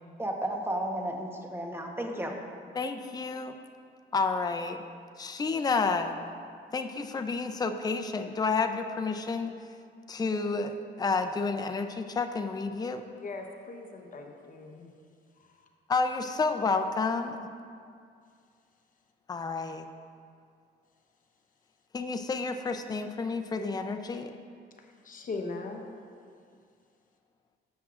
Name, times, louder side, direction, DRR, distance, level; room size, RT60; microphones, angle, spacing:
voice 1, 0.2-2.4, right 1 dB, 10° right, 2 dB, 1.0 m, -33 dB
voice 2, 2.8-3.5 4.1-4.8 5.2-6.2 6.7-9.5 10.1-13.0 15.9-17.4 19.3-19.8 21.9-24.3, left 4 dB, 20° left, 6 dB, 0.5 m, -30 dB
voice 3, 13.2-14.9 25.0-25.9 26.2-26.3, left 3 dB, 40° left, 2 dB, 1.0 m, -39 dB
13.0 x 7.4 x 2.5 m, 2.2 s
cardioid pair, 90°, 20 cm